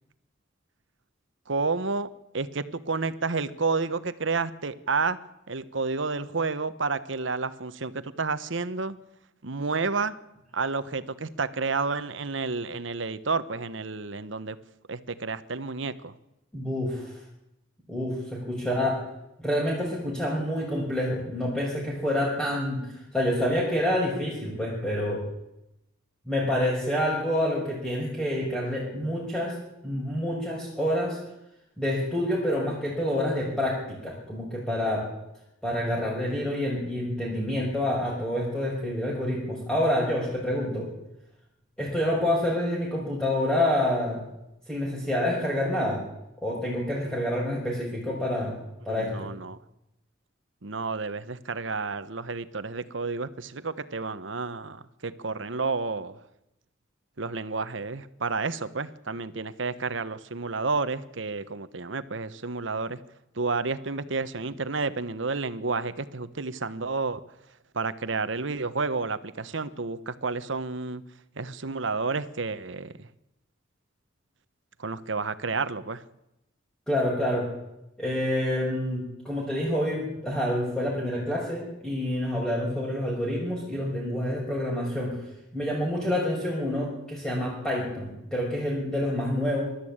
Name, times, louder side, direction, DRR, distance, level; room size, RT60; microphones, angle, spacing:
voice 1, 1.5-2.1 2.3-5.2 5.5-9.0 9.4-10.1 10.5-14.6 14.9-16.1 47.1-47.2 48.9-49.6 50.6-56.2 57.2-63.0 63.4-67.2 67.7-71.0 71.4-73.1 74.8-76.0, right 4 dB, 70° right, 13 dB, 1.1 m, -30 dB
voice 2, 16.5-17.1 17.9-19.0 19.4-25.2 26.3-29.5 29.8-31.2 31.8-35.0 35.6-40.9 41.8-44.2 44.7-46.0 46.4-48.5 48.8-49.3 76.9-77.5 78.0-85.2 85.5-89.6, left 1 dB, 5° left, -4 dB, 6.1 m, -27 dB
24.0 x 13.0 x 8.8 m, 0.89 s
head